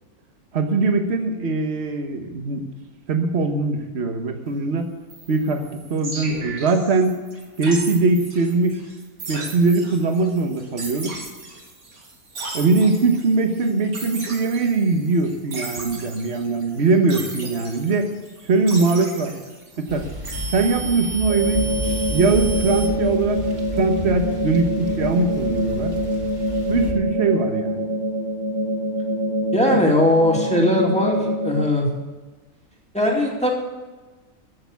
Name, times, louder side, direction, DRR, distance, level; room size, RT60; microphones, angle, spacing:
voice 1, 0.5-2.6 3.1-4.8 5.3-5.6 5.9-7.2 7.6-8.8 9.3-11.1 12.5-18.1 18.4-19.3 19.8-20.1 20.5-21.6 22.1-23.4 23.8-25.9 26.7-27.9 29.7-29.8, right 3 dB, 50° right, 6 dB, 1.5 m, -21 dB
sound 1, 5.1-22.9, right 3 dB, 80° right, 2.6 m, -36 dB
sound 2, 19.9-26.9, equal, 30° right, 2.1 m, -32 dB
sound 3, 21.3-31.6, equal, 20° left, 1.0 m, -25 dB
voice 2, 29.5-31.9 32.9-33.5, left 1 dB, 5° left, -1 dB, 2.4 m, -19 dB
14.5 x 7.0 x 8.3 m, 1.2 s
omnidirectional pair, 1.5 m